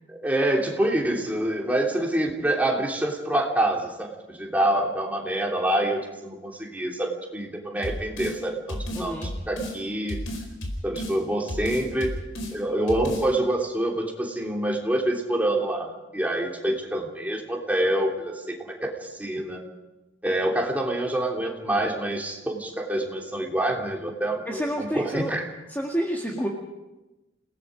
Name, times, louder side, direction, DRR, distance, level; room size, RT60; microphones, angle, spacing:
voice 1, 0.1-9.1 9.5-10.2 10.8-12.2 12.5-18.3 18.6-19.6 20.2-25.5, right 1 dB, 10° right, -1 dB, 3.2 m, -26 dB
sound 1, 7.8-8.4 8.7-9.8 10.1-11.2 11.5-12.5 12.9-13.3, equal, 85° left, 4.6 m, -32 dB
voice 2, 8.9-9.4 24.5-25.3 25.7-26.5, equal, 10° left, -1 dB, 1.9 m, -29 dB
29.0 x 18.5 x 5.2 m, 1.1 s
head